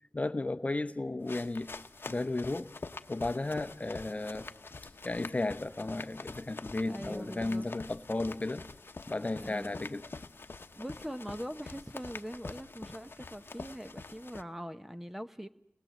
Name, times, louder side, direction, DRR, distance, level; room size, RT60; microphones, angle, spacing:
voice 1, 0.1-1.7 2.1-2.7 3.1-4.6 5.0-8.7 9.1-10.1, left 2 dB, 30° left, 0.9 m, -34 dB
sound 1, 1.2-14.4, left 3 dB, 55° left, 1.0 m, -46 dB
voice 2, 6.8-7.7 9.4-9.9 10.7-15.5, equal, 5° right, 0.9 m, -42 dB
30.0 x 20.0 x 7.8 m
wide cardioid pair, 65°, 4 cm